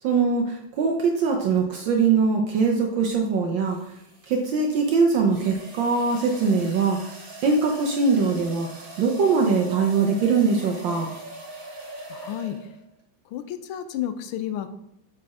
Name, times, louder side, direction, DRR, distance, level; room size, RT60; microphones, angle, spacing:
voice 1, 0.0-3.8 4.3-7.0 7.4-11.1, right 4 dB, 70° right, 1 dB, 1.4 m, -22 dB
sound 1, 1.8-2.0 3.7-12.9, right 2 dB, 30° right, 1.1 m, -42 dB
voice 2, 12.1-12.7 13.3-14.7, left 10 dB, 85° left, 9 dB, 1.5 m, -31 dB
7.7 x 4.3 x 4.7 m, 0.82 s
omnidirectional pair, 2.3 m